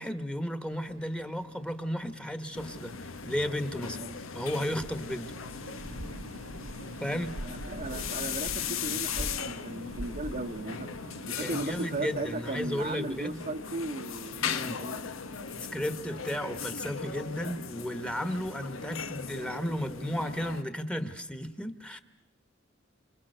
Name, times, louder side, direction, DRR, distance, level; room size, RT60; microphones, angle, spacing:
voice 1, 0.0-4.1 4.3-5.3 7.0-7.4 11.4-13.4 14.4-14.8 15.5-22.0, equal, 5° left, 1.4 m, -34 dB
between fridge wall, 0.7-15.9, equal, 85° right, 2.4 m, -45 dB
sound 1, 2.5-20.6, left 6 dB, 90° left, 1.2 m, -38 dB
voice 2, 7.4-10.9 11.3-14.5 14.8-15.1, right 2 dB, 40° right, 1.0 m, -36 dB
29.5 x 26.0 x 6.7 m
head